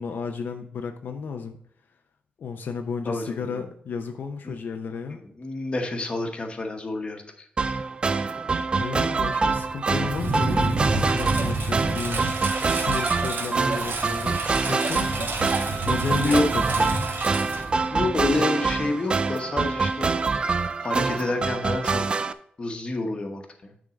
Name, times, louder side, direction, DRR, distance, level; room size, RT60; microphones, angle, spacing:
voice 1, 0.0-1.6 2.4-5.2 8.7-12.2 12.6-15.3 15.8-16.9, left 5 dB, 70° left, 5 dB, 0.6 m, -33 dB
voice 2, 3.0-3.6 4.4-4.6 5.1-7.5 16.1-16.5 17.9-22.0 22.6-23.7, left 2 dB, 30° left, 4 dB, 1.1 m, -28 dB
sound 1, 7.6-22.3, right 4 dB, 30° right, 0.4 m, -25 dB
Engine, 9.5-18.3, right 2 dB, 65° right, 1.4 m, -29 dB
9.8 x 3.7 x 5.0 m, 0.66 s
wide cardioid pair, 180°, 3 cm